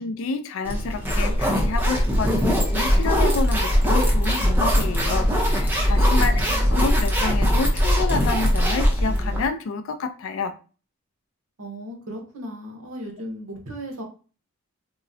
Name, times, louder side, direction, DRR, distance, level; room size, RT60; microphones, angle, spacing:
voice 1, 0.0-10.5, left 4 dB, 65° left, 0.3 m, -29 dB
sound 1, 0.7-9.4, equal, 10° right, 0.5 m, -20 dB
voice 2, 6.1-6.8 11.6-14.0, equal, 70° right, 0.8 m, -36 dB
3.6 x 2.0 x 2.5 m
head